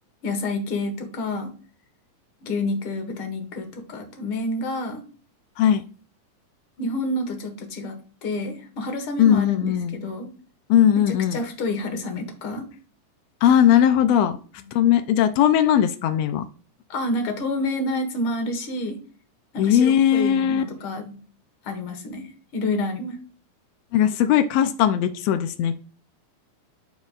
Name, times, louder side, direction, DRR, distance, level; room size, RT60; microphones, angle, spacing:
voice 1, 0.2-1.5 2.4-5.0 6.8-10.3 11.0-12.6 16.9-19.0 19.5-21.2 21.6-23.2, left 2 dB, 50° left, 5 dB, 1.9 m, -29 dB
voice 2, 9.2-9.9 10.7-11.4 13.4-14.4 14.7-16.4 19.6-20.6 23.9-25.7, left 10 dB, 90° left, 9 dB, 1.4 m, -19 dB
13.0 x 4.4 x 2.4 m, 0.40 s
omnidirectional pair, 3.5 m